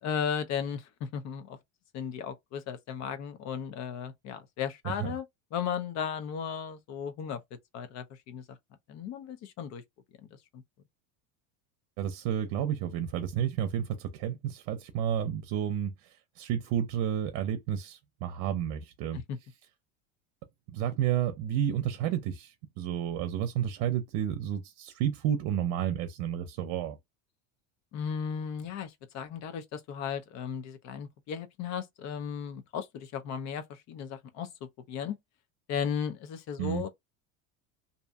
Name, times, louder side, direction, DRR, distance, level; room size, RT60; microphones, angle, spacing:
voice 1, 0.0-1.6 1.9-5.2 5.5-7.4 7.7-8.6 8.9-9.8 10.5-10.6 19.1-19.4 27.9-35.2 35.7-36.9, left 7 dB, 45° left, 0.7 m, -35 dB
voice 2, 12.0-16.1 16.4-19.2 20.7-27.0 36.6-36.8, right 10 dB, 65° right, 0.7 m, -31 dB
2.7 x 2.5 x 2.3 m
cardioid pair, 145°, 39 cm